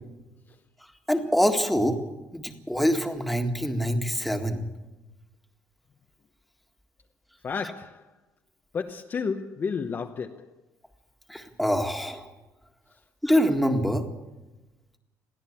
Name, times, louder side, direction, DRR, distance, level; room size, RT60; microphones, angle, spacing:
voice 1, 1.1-2.0 2.3-4.6 11.3-12.2 13.2-14.1, equal, ahead, 1.9 m, -25 dB
voice 2, 7.4-8.0 8.7-10.5, left 5 dB, 30° left, 0.9 m, -31 dB
22.5 x 15.5 x 8.5 m
cardioid pair, 145°, 7 cm